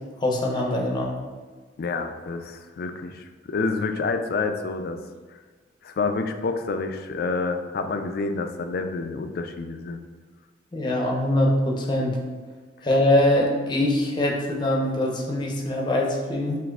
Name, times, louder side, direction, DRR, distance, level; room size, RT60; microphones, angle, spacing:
voice 1, 0.2-1.1 10.7-12.1 12.8-16.6, left 1 dB, 25° left, -1 dB, 0.7 m, -23 dB
voice 2, 1.8-5.0 5.8-10.0, left 4 dB, 55° left, 7 dB, 0.3 m, -28 dB
6.2 x 2.5 x 2.3 m, 1.4 s
head